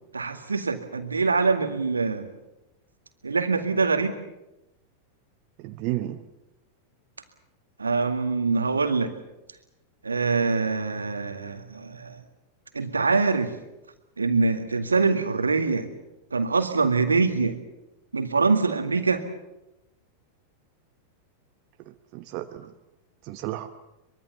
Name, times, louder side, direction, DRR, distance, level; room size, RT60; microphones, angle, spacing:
voice 1, 0.1-2.3 3.2-4.2 7.8-9.2 10.0-12.2 12.7-13.5 14.2-15.9 16.3-17.6 18.1-19.2, right 4 dB, 75° right, 7 dB, 2.1 m, -24 dB
voice 2, 5.6-6.2 21.8-22.7 23.2-23.7, right 15 dB, 45° right, 8 dB, 1.1 m, -33 dB
23.5 x 22.5 x 7.1 m, 0.95 s
figure-of-eight pair, 90°, 0 cm